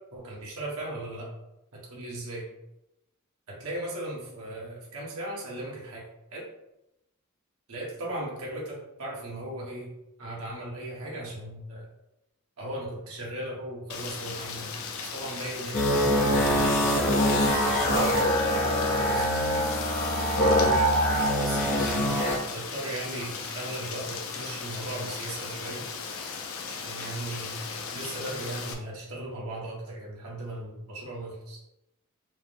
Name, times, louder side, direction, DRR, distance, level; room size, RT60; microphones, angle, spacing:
voice 1, 0.1-1.3 1.7-2.4 3.5-6.0 6.3-6.5 7.7-9.9 10.2-11.9 12.6-14.8 15.1-17.7 19.0-19.3 21.4-25.8 26.6-27.6 27.9-31.6, right 1 dB, 80° right, -4 dB, 1.2 m, -37 dB
Rain, 13.9-28.7, left 5 dB, 70° left, 0.5 m, -37 dB
sound 1, 15.7-22.4, equal, 50° left, 0.9 m, -24 dB
4.6 x 2.1 x 3.5 m, 0.89 s
head